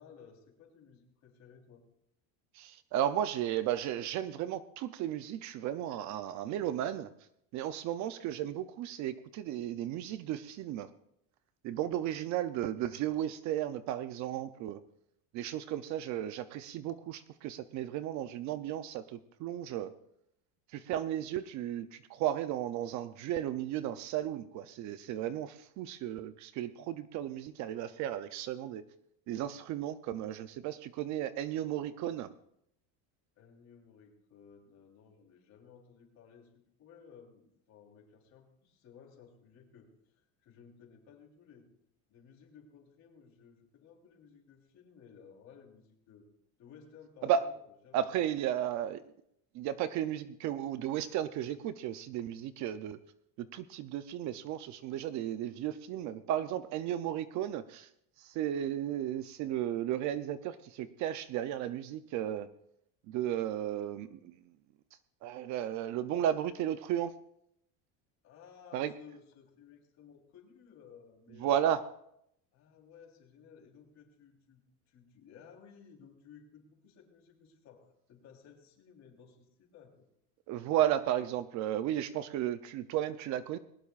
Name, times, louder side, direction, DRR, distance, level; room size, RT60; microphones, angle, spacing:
voice 1, 0.0-1.9 33.4-36.5 36.8-41.7 42.1-46.3 46.6-47.6 47.8-48.3 68.2-71.6 72.5-80.0, left 6 dB, 40° left, 1 dB, 3.7 m, -57 dB
voice 2, 2.5-7.1 7.5-10.9 11.6-14.8 15.3-19.9 20.7-28.8 29.3-32.3 47.2-47.5 47.9-49.0 49.5-53.0 53.4-57.9 58.2-62.5 63.1-64.3 65.2-67.2 68.7-68.9 71.4-71.8 80.5-83.6, right 11 dB, 45° right, 13 dB, 0.6 m, -34 dB
21.0 x 18.5 x 2.4 m, 0.76 s
cardioid pair, 165°, 41 cm